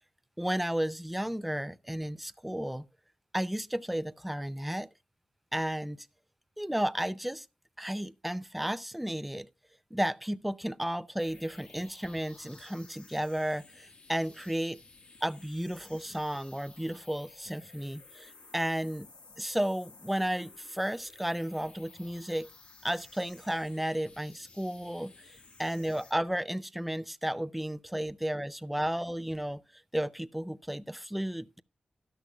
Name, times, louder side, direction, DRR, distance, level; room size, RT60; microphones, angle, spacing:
voice 1, 0.4-2.8 3.3-4.9 5.5-6.1 6.6-7.5 7.8-9.5 9.9-14.8 15.2-19.1 19.4-22.5 22.8-31.6, right 1 dB, 5° right, 0.5 m, -33 dB
sound 1, 11.2-26.1, left 3 dB, 55° left, 1.5 m, -55 dB
12.5 x 11.5 x 2.3 m
wide cardioid pair, 80°, 2 cm